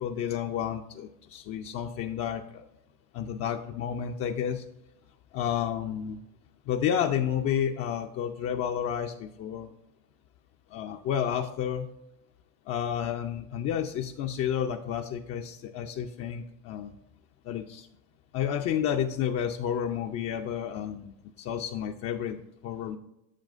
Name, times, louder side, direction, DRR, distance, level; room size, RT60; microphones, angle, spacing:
voice 1, 0.0-2.6 3.1-4.6 5.3-6.2 6.7-9.7 10.7-11.9 12.7-16.9 17.5-17.9 18.3-23.0, left 9 dB, 35° left, 3 dB, 0.4 m, -31 dB
7.4 x 7.2 x 2.5 m, 0.84 s
hypercardioid pair, 90°, 48 cm